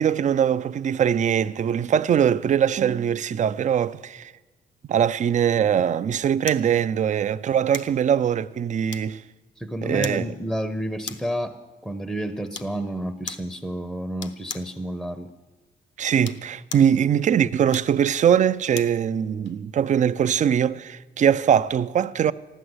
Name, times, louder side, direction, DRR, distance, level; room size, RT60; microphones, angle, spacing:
voice 1, 0.0-4.3 4.9-9.2 9.8-10.2 16.0-22.3, right 8 dB, 40° right, 0.4 m, -22 dB
sound 1, 6.5-6.7 7.7-8.0 8.9-9.3 10.0-10.3 11.0-11.4 12.5-12.8 13.3-13.5 14.2-14.7 16.1-17.0 17.7-19.0 19.5-19.6, left 7 dB, 75° left, 1.0 m, -37 dB
voice 2, 9.6-11.5 11.8-15.3, equal, ahead, 0.7 m, -30 dB
15.0 x 11.0 x 7.9 m
cardioid pair, 130°, 19 cm